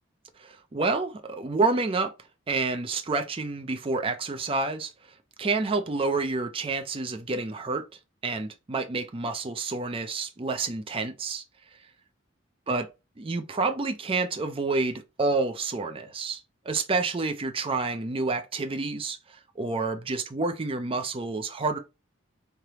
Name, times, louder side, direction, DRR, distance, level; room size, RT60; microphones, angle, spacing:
voice 1, 0.4-2.1 2.5-4.9 5.4-7.8 8.2-11.4 12.7-12.9 13.2-21.8, right 3 dB, 25° right, 0.5 m, -29 dB
3.5 x 3.3 x 2.9 m
head